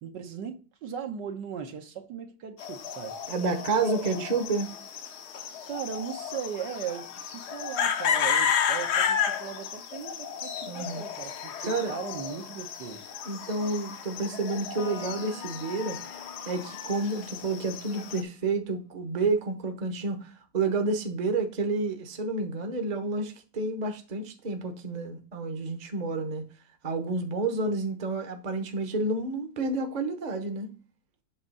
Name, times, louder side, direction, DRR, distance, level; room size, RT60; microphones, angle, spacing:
voice 1, 0.0-3.2 3.8-4.3 5.7-13.1, right 7 dB, 70° right, 1.6 m, -38 dB
sound 1, 2.6-18.2, left 7 dB, 65° left, 1.3 m, -32 dB
voice 2, 3.3-4.7 10.7-11.0 11.7-11.9 13.2-16.0 16.5-26.4 26.8-30.7, right 3 dB, 30° right, 0.9 m, -30 dB
Electric guitar, 14.8-18.3, left 6 dB, 85° left, 1.8 m, -46 dB
8.0 x 3.6 x 5.4 m
omnidirectional pair, 2.0 m